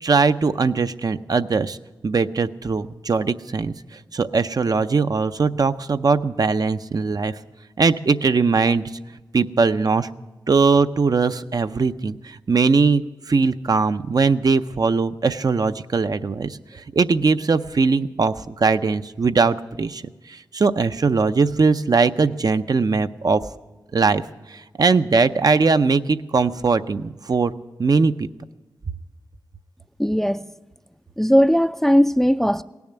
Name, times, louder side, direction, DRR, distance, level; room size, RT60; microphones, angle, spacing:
voice 1, 0.0-1.8 2.0-3.7 4.1-7.3 7.8-8.8 9.3-10.1 10.5-20.0 20.3-23.4 23.9-24.2 24.5-27.5 27.8-28.3, right 4 dB, 55° right, 0.5 m, -20 dB
voice 2, 30.0-30.4 31.2-32.6, equal, 5° left, 0.4 m, -18 dB
17.5 x 7.1 x 9.9 m
cardioid pair, 55°, 8 cm